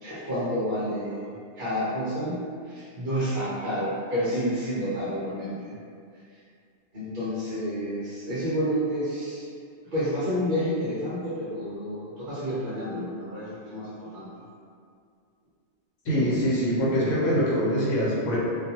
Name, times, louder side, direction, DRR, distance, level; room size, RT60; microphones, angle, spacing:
voice 1, 0.0-2.4 2.6-5.7 6.9-9.5 9.9-14.3, equal, 55° right, -10 dB, 0.7 m, -29 dB
voice 2, 16.0-18.4, equal, 75° left, -8 dB, 1.1 m, -24 dB
2.4 x 2.3 x 2.7 m, 2.3 s
omnidirectional pair, 1.3 m